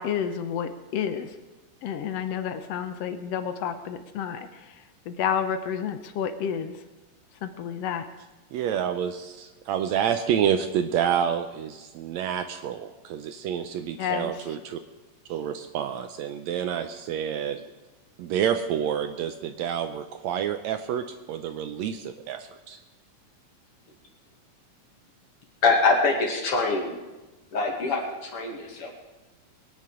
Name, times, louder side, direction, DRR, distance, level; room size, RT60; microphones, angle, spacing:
voice 1, 0.0-1.4 1.8-6.8 7.4-8.1 14.0-14.6, left 8 dB, 70° left, 9 dB, 1.6 m, -30 dB
voice 2, 8.5-14.8 15.3-17.7 18.2-22.8, right 9 dB, 75° right, 8 dB, 1.7 m, -28 dB
voice 3, 25.6-27.0 27.5-29.0, left 3 dB, 50° left, 2 dB, 2.8 m, -24 dB
22.0 x 9.6 x 4.9 m, 1.1 s
omnidirectional pair, 3.6 m